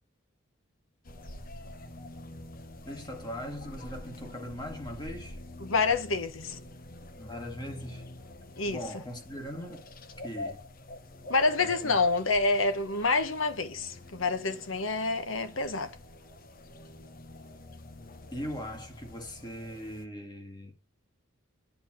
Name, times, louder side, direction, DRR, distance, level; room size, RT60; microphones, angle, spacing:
sound 1, 1.0-20.1, left 1 dB, 45° left, 1.1 m, -46 dB
voice 1, 2.9-5.4 7.2-8.0 8.7-9.8 10.2-10.6 11.6-12.0 18.3-20.7, equal, 20° left, 2.1 m, -40 dB
voice 2, 5.6-6.6 8.6-8.8 11.3-15.9, left 3 dB, 80° left, 1.4 m, -27 dB
10.0 x 4.5 x 7.6 m
head